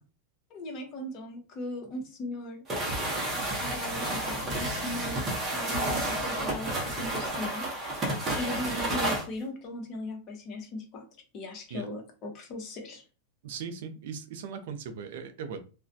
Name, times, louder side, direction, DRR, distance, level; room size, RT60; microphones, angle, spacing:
voice 1, 0.5-2.6 3.0-8.0 8.3-11.1 11.3-13.0, left 1 dB, 35° left, 0.8 m, -38 dB
sound 1, 2.7-9.3, right 1 dB, 20° right, 0.7 m, -31 dB
voice 2, 13.4-15.6, right 6 dB, 70° right, 0.4 m, -38 dB
2.3 x 2.1 x 2.6 m
supercardioid pair, 140°, 0 cm